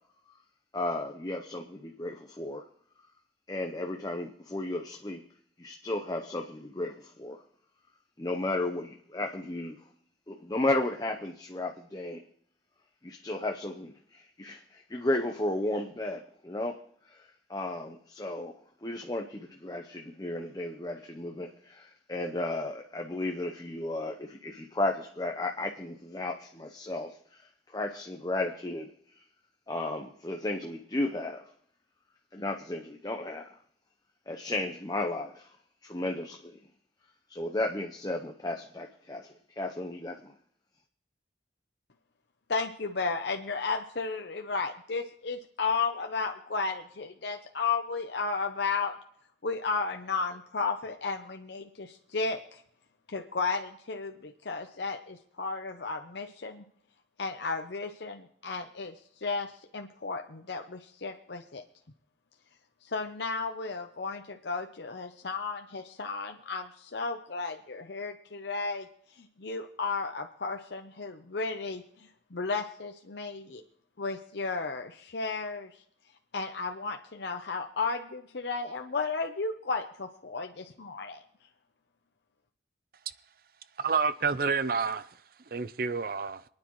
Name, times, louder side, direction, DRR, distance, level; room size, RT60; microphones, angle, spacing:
voice 1, 0.7-2.7 3.5-5.2 5.6-7.4 8.2-9.8 10.3-12.2 13.0-27.4 27.7-29.2 29.7-31.5 32.3-33.5 34.3-35.6 35.8-36.6 37.3-40.3, left 2 dB, 20° left, 0.8 m, -34 dB
voice 2, 42.5-48.9 49.4-52.6 53.1-56.6 57.2-61.6 62.8-73.6 74.0-75.8 76.3-81.2, left 4 dB, 65° left, 0.7 m, -34 dB
voice 3, 83.8-85.1 85.5-86.4, right 5 dB, 50° right, 0.5 m, -28 dB
27.0 x 9.6 x 3.1 m
head